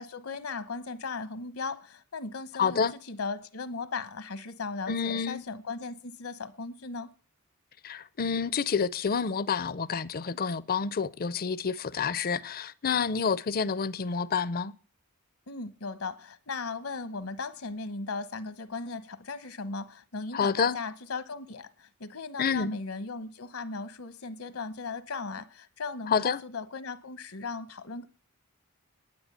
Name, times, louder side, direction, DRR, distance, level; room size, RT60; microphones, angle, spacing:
voice 1, 0.0-7.1 15.5-28.1, left 4 dB, 70° left, 1.1 m, -37 dB
voice 2, 2.6-2.9 4.9-5.4 7.8-14.7 20.3-20.8 22.4-22.8 26.1-26.4, left 6 dB, 45° left, 0.6 m, -28 dB
10.5 x 9.4 x 8.0 m
head